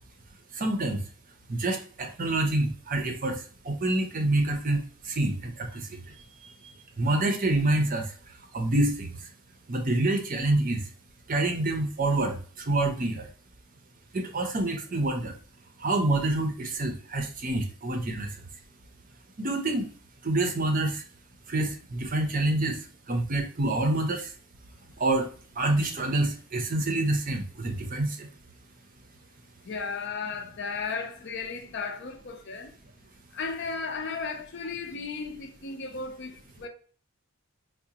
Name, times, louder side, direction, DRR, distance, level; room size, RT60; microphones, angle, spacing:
voice 1, 0.5-1.0 1.5-8.1 8.5-9.1 9.7-10.8 11.3-13.3 14.1-15.3 15.8-18.4 19.4-19.9 20.2-21.0 21.5-24.3 25.0-25.3 25.6-28.3, right 2 dB, 35° right, 0.6 m, -27 dB
voice 2, 29.6-32.7 33.3-36.7, left 4 dB, 50° left, 0.5 m, -35 dB
4.8 x 2.2 x 2.7 m
head